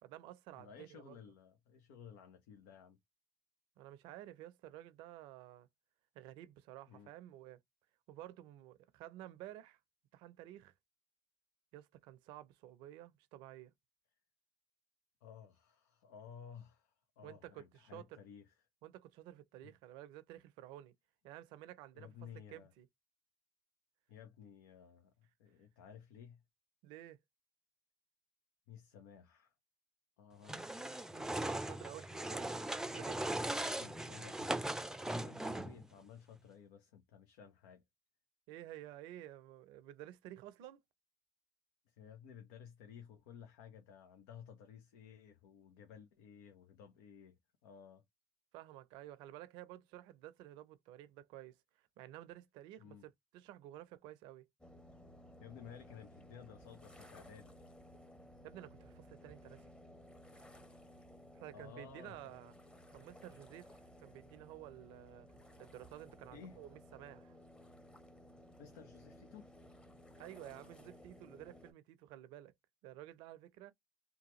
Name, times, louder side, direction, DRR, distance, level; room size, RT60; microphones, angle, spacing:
voice 1, 0.0-1.2 3.8-5.7 6.1-7.6 8.1-9.8 10.1-10.7 11.7-13.7 17.2-18.2 18.8-20.9 21.2-22.1 22.5-22.9 26.8-27.2 31.1-33.4 38.5-40.8 48.5-54.5 58.4-59.7 61.3-62.5 62.9-65.3 65.6-67.4 70.2-72.5 72.8-73.7, right 13 dB, 80° right, 0.5 m, -52 dB
voice 2, 0.5-3.0 6.9-7.1 15.2-18.5 19.6-19.7 21.9-22.7 24.1-26.4 28.7-29.5 30.2-30.9 33.5-34.5 34.9-37.8 41.9-48.0 52.8-53.0 55.4-57.5 61.5-62.2 66.3-66.6 68.6-69.5, left 8 dB, 90° left, 0.6 m, -55 dB
sound 1, 30.4-35.9, right 1 dB, 5° right, 0.4 m, -39 dB
sound 2, 54.6-71.7, equal, 10° left, 0.9 m, -58 dB
2.8 x 2.3 x 2.9 m
supercardioid pair, 65°, 8 cm